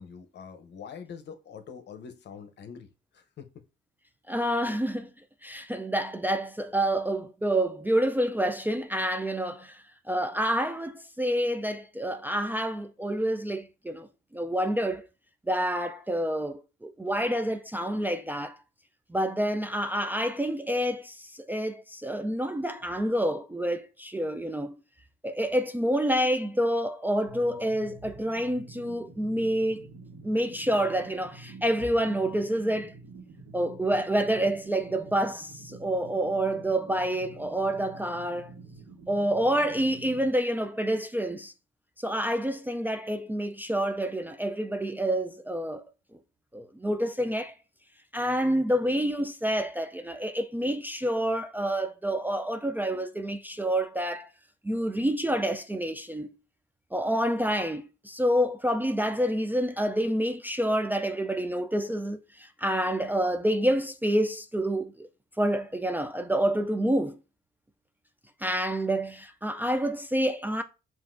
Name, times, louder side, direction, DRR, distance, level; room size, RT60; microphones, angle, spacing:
voice 1, 0.0-3.5, left 6 dB, 60° left, 0.7 m, -44 dB
voice 2, 4.3-5.1 5.4-14.1 14.3-15.0 15.5-18.6 19.1-24.8 25.2-29.9 30.2-32.9 33.5-38.5 39.1-41.5 42.0-45.8 46.5-47.5 48.1-54.3 54.6-56.3 56.9-65.1 65.4-67.2 68.4-70.6, right 1 dB, 10° right, 0.3 m, -28 dB
sound 1, 27.3-40.3, right 3 dB, 70° right, 1.2 m, -48 dB
5.7 x 2.5 x 2.5 m
cardioid pair, 90°, 20 cm